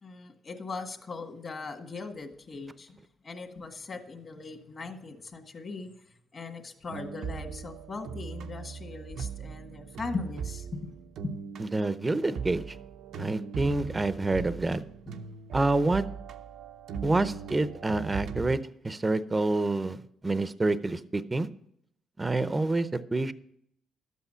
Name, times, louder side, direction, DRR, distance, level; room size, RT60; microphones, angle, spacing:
voice 1, 0.0-3.0 3.2-10.9 11.2-11.4 15.1-15.2, left 4 dB, 40° left, 5 dB, 1.7 m, -39 dB
sound 1, 6.9-18.6, right 6 dB, 75° right, 0.7 m, -39 dB
voice 2, 11.6-12.8 13.2-14.8 15.5-16.0 17.0-21.5 22.2-23.3, right 2 dB, 20° right, 13 dB, 0.6 m, -27 dB
12.5 x 8.3 x 5.6 m, 0.72 s
cardioid pair, 90°, 0 cm